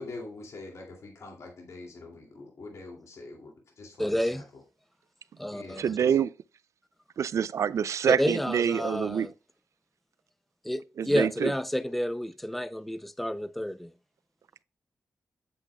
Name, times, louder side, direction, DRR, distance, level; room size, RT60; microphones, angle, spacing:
voice 1, 0.0-4.4 5.5-6.1, left 3 dB, 65° left, 2.4 m, -44 dB
voice 2, 4.0-4.4 5.4-5.8 8.1-9.3 10.6-13.9, left 1 dB, 5° left, 0.5 m, -30 dB
voice 3, 5.8-6.3 7.2-9.3 11.0-11.5, right 8 dB, 70° right, 0.3 m, -26 dB
8.4 x 7.7 x 2.2 m
cardioid pair, 90°, 5 cm